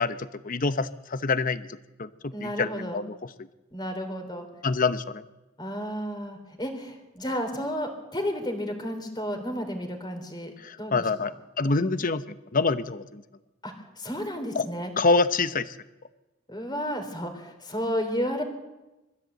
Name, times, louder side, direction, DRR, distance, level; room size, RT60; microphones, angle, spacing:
voice 1, 0.0-1.7 2.0-3.5 4.6-5.2 10.6-13.2 14.5-14.6 15.0-15.7, left 3 dB, 45° left, 12 dB, 0.9 m, -26 dB
voice 2, 2.3-3.0 3.7-4.5 5.6-10.5 10.8-10.9 13.6-14.9 16.5-18.4, equal, 20° left, 5 dB, 3.4 m, -32 dB
23.0 x 14.5 x 8.1 m, 1.0 s
head